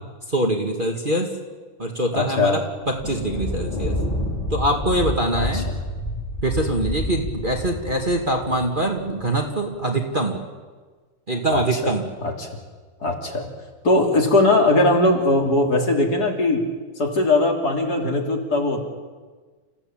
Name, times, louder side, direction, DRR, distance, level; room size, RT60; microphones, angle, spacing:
voice 1, 0.3-1.3 1.8-2.6 2.9-4.0 4.5-5.7 6.4-10.4 11.3-12.1, right 1 dB, 25° right, 2 dB, 2.2 m, -23 dB
voice 2, 2.1-2.6 5.3-5.8 11.5-11.8 12.2-12.5 13.0-13.5 13.8-16.6 17.0-18.8, left 2 dB, 50° left, 1 dB, 3.7 m, -20 dB
Thunder, 2.8-9.5, left 1 dB, 75° left, 5.8 m, -29 dB
29.0 x 15.5 x 8.9 m, 1.4 s
omnidirectional pair, 2.2 m